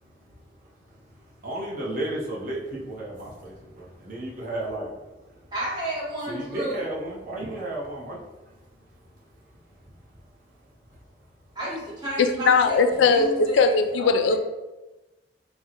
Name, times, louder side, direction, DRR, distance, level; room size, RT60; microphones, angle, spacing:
voice 1, 0.0-5.5 6.3-11.1, right 1 dB, 50° right, -4 dB, 0.7 m, -35 dB
voice 2, 5.5-6.8 11.5-14.4, right 1 dB, 25° right, -7 dB, 0.9 m, -33 dB
voice 3, 12.2-14.4, left 4 dB, 80° left, 8 dB, 0.3 m, -20 dB
3.6 x 2.0 x 2.8 m, 1.1 s
head